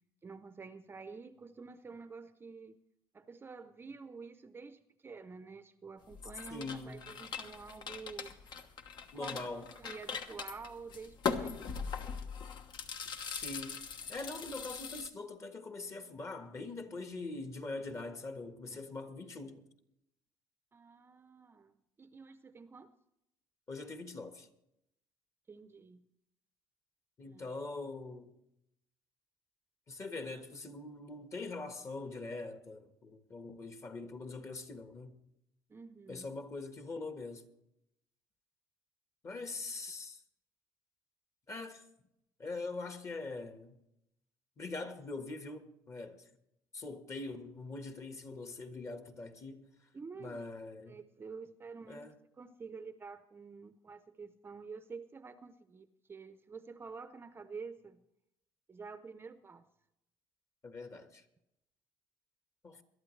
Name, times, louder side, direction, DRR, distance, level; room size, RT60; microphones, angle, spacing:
voice 1, 0.2-2.8 3.1-8.4 9.1-12.3 20.7-21.7 22.0-22.9 25.5-26.1 27.2-27.5 35.7-36.3 49.9-50.5 50.9-52.1 52.4-58.0 58.7-59.7, right 4 dB, 25° right, 0.6 m, -49 dB
sound 1, 6.1-15.1, left 6 dB, 55° left, 1.1 m, -41 dB
voice 2, 6.5-7.0 9.1-9.6 13.3-13.8 14.1-19.6 23.7-24.5 27.2-28.3 29.9-35.1 36.1-37.4 39.2-40.2 41.5-41.8 42.4-43.8 44.6-46.2 46.7-49.7 50.2-51.0 51.9-52.1 60.6-61.2 62.6-62.8, left 3 dB, 35° left, 1.5 m, -43 dB
22.0 x 12.0 x 3.2 m
cardioid pair, 110°, 9 cm